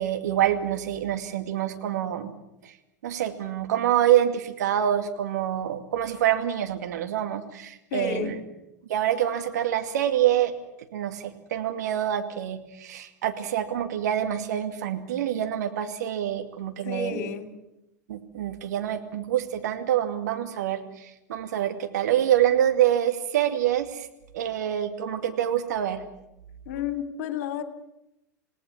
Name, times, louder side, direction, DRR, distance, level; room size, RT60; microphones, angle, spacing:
voice 1, 0.0-2.3 2.6-2.7 3.0-8.4 8.9-10.5 10.9-17.3 18.1-24.1 24.3-26.0, right 11 dB, 65° right, 6 dB, 2.4 m, -26 dB
voice 2, 7.9-8.3 16.8-17.5 26.7-27.6, left 7 dB, 55° left, 7 dB, 3.1 m, -31 dB
27.5 x 18.5 x 7.3 m, 0.87 s
figure-of-eight pair, 85°, 10 cm